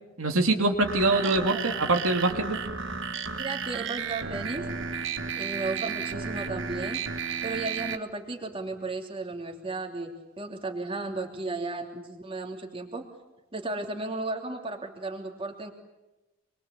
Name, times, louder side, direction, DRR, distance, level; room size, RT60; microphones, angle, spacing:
voice 1, 0.2-2.6, right 2 dB, 75° right, 3 dB, 2.9 m, -24 dB
sound 1, 0.8-8.0, right 5 dB, 55° right, 1.8 m, -33 dB
voice 2, 1.1-1.6 3.3-4.7 5.4-7.0 7.4-13.1 13.5-15.7, right 3 dB, 25° right, 3 dB, 3.1 m, -34 dB
26.0 x 23.0 x 8.4 m, 1.0 s
head